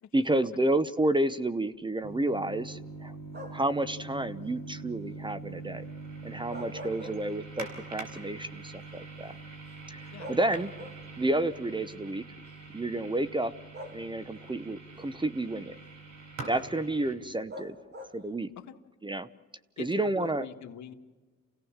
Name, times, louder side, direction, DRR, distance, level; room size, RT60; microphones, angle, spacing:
voice 1, 0.1-3.1 3.5-5.8 6.2-9.4 9.9-10.7 11.2-12.2 12.7-13.5 13.9-15.7 16.5-17.8 18.1-18.5 19.0-19.3 19.8-20.5, right 1 dB, 15° right, 15 dB, 0.8 m, -30 dB
sound 1, 2.0-17.1, right 3 dB, 65° right, 5.2 m, -44 dB
sound 2, 3.3-3.8 6.3-7.7 8.1-8.2 9.7-9.8 10.2-11.3 12.4-12.5 13.7-14.5 17.5-18.4, equal, 35° right, 3.1 m, -44 dB
voice 2, 19.8-20.9, left 9 dB, 65° left, 6 dB, 1.8 m, -44 dB
28.5 x 17.0 x 7.3 m, 1.3 s
cardioid pair, 90°, 30 cm